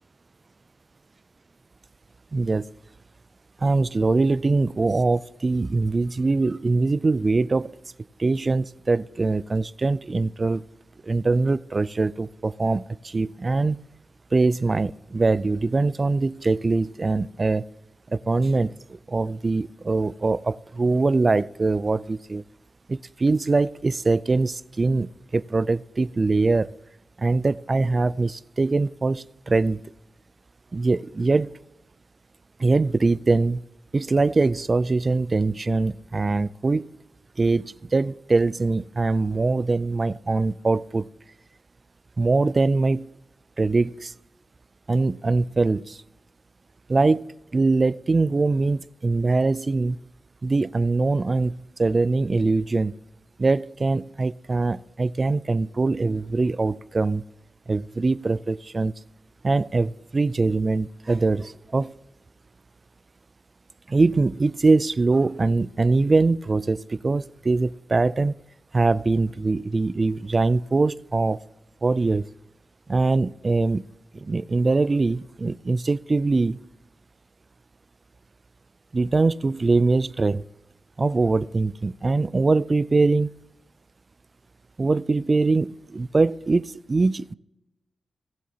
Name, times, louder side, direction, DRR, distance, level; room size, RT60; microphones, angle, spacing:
voice 1, 2.3-2.6 3.6-7.7 8.2-10.7 11.0-13.8 14.3-17.6 18.1-22.4 22.9-26.7 27.2-29.8 30.7-31.5 32.6-33.6 33.9-36.9 37.4-41.1 42.2-43.1 43.6-44.1 44.9-46.0 46.9-47.2 47.5-50.0 50.4-52.9 53.4-57.2 57.7-58.9 59.4-61.9 63.9-68.3 68.7-71.4 71.8-72.2 72.9-73.8 74.1-76.6 78.9-80.4 81.0-83.3 84.8-87.3, right 3 dB, 35° right, 0.3 m, -22 dB
18.5 x 7.6 x 2.8 m
wide cardioid pair, 90°, 0 cm